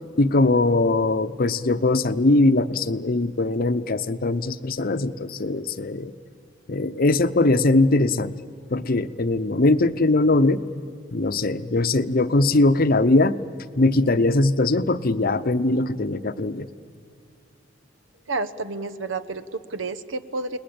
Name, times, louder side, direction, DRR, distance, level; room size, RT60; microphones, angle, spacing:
voice 1, 0.2-6.1 6.7-8.3 8.7-10.6 11.1-13.4 13.8-16.7, left 2 dB, 50° left, 12 dB, 0.8 m, -21 dB
voice 2, 18.3-20.6, right 3 dB, 80° right, 13 dB, 1.1 m, -30 dB
29.5 x 20.0 x 8.7 m, 2.5 s
head